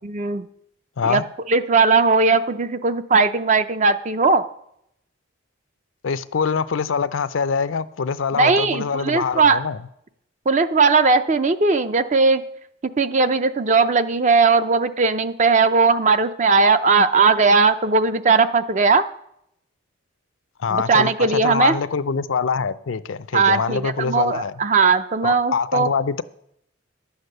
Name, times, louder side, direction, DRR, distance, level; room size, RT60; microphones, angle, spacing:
voice 1, 0.0-0.5 1.0-1.2 1.5-4.4 8.4-9.6 10.5-12.4 13.0-19.1 20.7-21.8 23.3-25.9, right 4 dB, 35° right, 0.5 m, -18 dB
voice 2, 6.0-9.8 20.6-21.1 21.4-24.5 25.2-26.2, left 5 dB, 70° left, 0.5 m, -24 dB
11.0 x 8.1 x 6.7 m
head